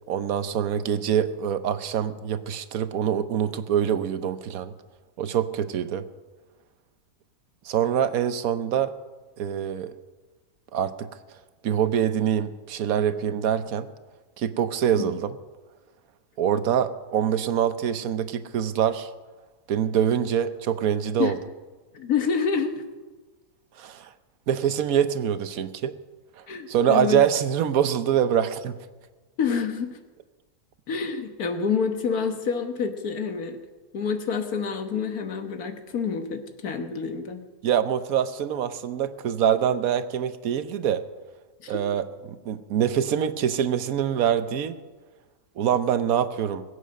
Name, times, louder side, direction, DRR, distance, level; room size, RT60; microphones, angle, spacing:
voice 1, 0.1-4.7 5.2-6.0 7.6-8.9 9.4-9.9 10.7-11.1 11.6-13.9 14.4-15.3 16.4-19.1 19.7-21.4 23.8-24.1 24.5-25.9 26.4-28.8 37.6-41.0 41.7-44.8 45.6-46.6, right 9 dB, 70° right, 12 dB, 1.2 m, -25 dB
voice 2, 21.9-22.8 26.5-27.2 29.4-30.0 30.9-33.6 33.9-37.5 41.6-41.8, left 6 dB, 75° left, 7 dB, 1.8 m, -28 dB
21.5 x 8.3 x 6.4 m, 1.3 s
omnidirectional pair, 1.6 m